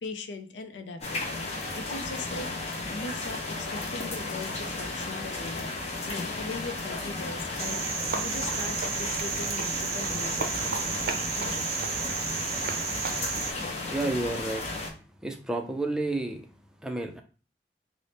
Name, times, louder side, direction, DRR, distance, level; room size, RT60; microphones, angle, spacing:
voice 1, 0.0-5.6 6.1-7.8 8.1-11.0 11.3-11.9, left 3 dB, 85° left, 7 dB, 0.5 m, -40 dB
sound 1, 1.0-14.9, left 2 dB, 40° left, 0.7 m, -34 dB
Cricket, 7.6-13.5, right 6 dB, 60° right, 0.5 m, -32 dB
voice 2, 13.9-14.6 15.2-16.4 16.8-17.2, right 2 dB, 5° right, 3 dB, 0.4 m, -30 dB
3.3 x 2.0 x 4.0 m, 0.36 s
head